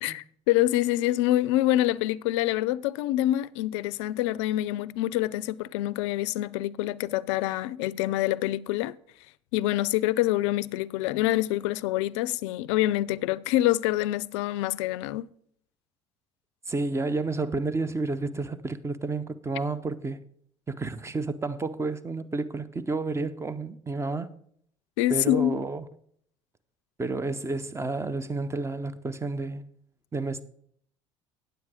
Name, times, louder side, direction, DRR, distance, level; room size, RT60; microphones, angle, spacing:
voice 1, 0.0-8.9 9.5-15.3 25.0-25.6, left 15 dB, 75° left, 0.4 m, -26 dB
voice 2, 16.7-20.2 20.7-24.4 25.1-25.8 27.0-29.6 30.1-30.4, right 3 dB, 20° right, 0.8 m, -30 dB
9.4 x 7.8 x 4.9 m
hypercardioid pair, 70°, 15 cm